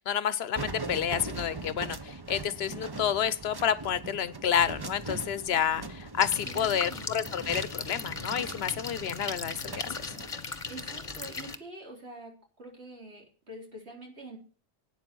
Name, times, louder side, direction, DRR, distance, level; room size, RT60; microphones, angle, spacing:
voice 1, 0.1-10.2, left 8 dB, 80° left, 16 dB, 1.0 m, -29 dB
sound 1, 0.6-10.3, right 3 dB, 25° right, 0.9 m, -41 dB
sound 2, 6.2-11.6, left 4 dB, 35° left, 1.2 m, -38 dB
voice 2, 6.4-7.1 10.7-14.4, right 2 dB, 90° right, 0 dB, 4.3 m, -46 dB
12.5 x 9.2 x 6.1 m, 0.37 s
omnidirectional pair, 1.1 m